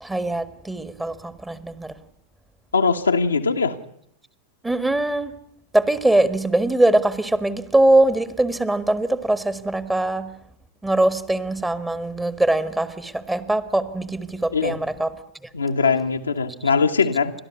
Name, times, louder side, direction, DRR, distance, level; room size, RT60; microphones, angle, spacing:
voice 1, 0.0-1.9 4.6-5.3 5.7-10.3 10.8-15.1, right 1 dB, 10° right, 14 dB, 1.6 m, -22 dB
voice 2, 2.7-3.7 14.5-14.8 15.5-17.3, left 5 dB, 80° left, 3 dB, 1.5 m, -21 dB
30.0 x 13.0 x 9.5 m, 0.73 s
figure-of-eight pair, 90°, 0 cm